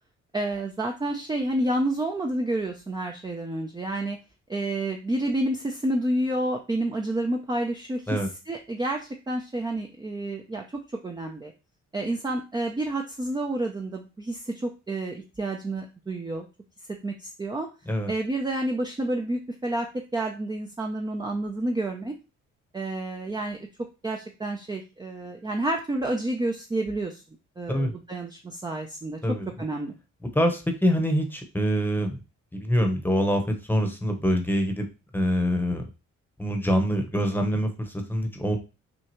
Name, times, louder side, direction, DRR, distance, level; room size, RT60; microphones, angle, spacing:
voice 1, 0.3-4.2 4.5-11.5 11.9-16.5 17.0-17.7 18.1-22.1 22.7-23.7 24.0-27.2 27.6-29.2 29.6-29.9, right 1 dB, 15° right, 2 dB, 0.5 m, -29 dB
voice 2, 30.3-32.2 32.5-34.9 35.1-35.8 36.4-38.6, equal, 5° left, 5 dB, 1.0 m, -25 dB
6.2 x 2.3 x 3.0 m, 0.30 s
cardioid pair, 90°, 30 cm